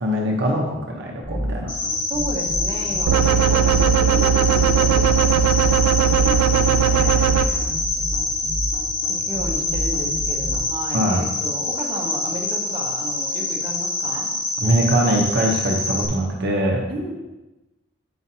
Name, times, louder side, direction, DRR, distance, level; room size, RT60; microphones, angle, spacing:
voice 1, 0.0-1.7 7.4-7.7 10.9-11.3 14.6-16.9, right 1 dB, 55° right, -1 dB, 0.9 m, -22 dB
sound 1, 1.2-10.6, equal, 15° left, 2.1 m, -29 dB
Cricket, 1.7-16.1, left 2 dB, 65° left, 1.3 m, -26 dB
voice 2, 2.1-7.3 9.1-14.3 16.9-17.1, right 1 dB, 25° right, -3 dB, 1.2 m, -33 dB
sound 2, 3.1-7.5, right 8 dB, 90° right, 0.3 m, -18 dB
8.6 x 5.7 x 2.8 m, 1.0 s
head